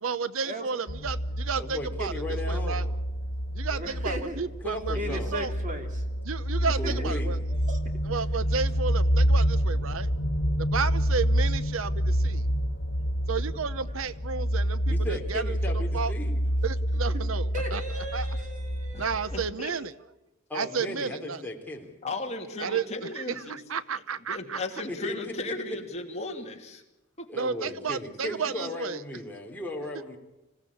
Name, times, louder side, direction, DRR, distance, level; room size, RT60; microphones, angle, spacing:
voice 1, 0.0-2.9 3.5-5.5 6.2-7.4 8.0-10.1 10.6-12.5 13.3-14.8 15.1-15.6 15.9-16.1 16.6-17.8 18.1-18.3 19.0-19.9 20.5-21.4 22.6-22.8 23.1-24.6 27.4-29.0, right 5 dB, 80° right, 15 dB, 0.8 m, -32 dB
sound 1, 0.9-19.5, equal, 65° left, 3.9 m, -28 dB
voice 2, 1.6-2.9 4.6-5.4 6.8-7.4 14.9-16.4 20.5-21.9 24.9-25.8 27.3-30.2, left 1 dB, 10° left, 0 dB, 3.5 m, -36 dB
voice 3, 3.7-4.5 4.9-6.0 6.6-6.9 7.3-7.8 17.1-17.2 17.5-19.4, equal, 35° right, 5 dB, 2.7 m, -37 dB
voice 4, 18.9-19.7 22.0-23.6 24.3-26.8 27.2-27.3, left 2 dB, 30° left, 2 dB, 2.8 m, -36 dB
26.0 x 16.5 x 8.6 m, 0.99 s
head